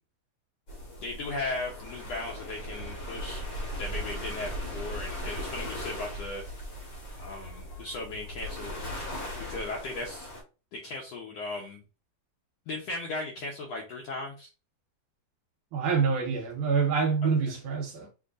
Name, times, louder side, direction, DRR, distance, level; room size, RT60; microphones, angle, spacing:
sound 1, 0.7-10.4, equal, 55° left, 1.2 m, -38 dB
voice 1, 1.0-3.4 3.8-6.4 7.2-8.7 9.4-10.3 10.7-11.8 12.7-14.5 17.2-17.3, left 2 dB, 75° left, 1.5 m, -37 dB
voice 2, 15.7-18.1, right 5 dB, 80° right, 2.1 m, -26 dB
6.7 x 2.6 x 2.5 m
omnidirectional pair, 3.7 m